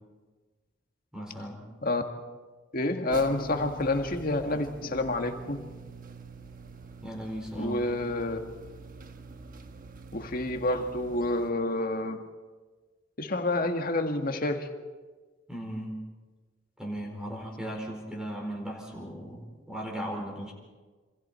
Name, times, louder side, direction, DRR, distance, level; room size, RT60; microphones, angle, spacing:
voice 1, 1.1-1.6 7.0-7.9 15.5-16.0 16.8-20.5, equal, 5° right, 0 dB, 4.6 m, -37 dB
voice 2, 2.7-5.7 7.6-8.4 10.1-12.2 13.2-14.7, left 2 dB, 45° left, 5 dB, 1.8 m, -28 dB
sound 1, 3.1-11.5, right 3 dB, 45° right, 1.3 m, -45 dB
27.5 x 26.5 x 4.5 m, 1.4 s
head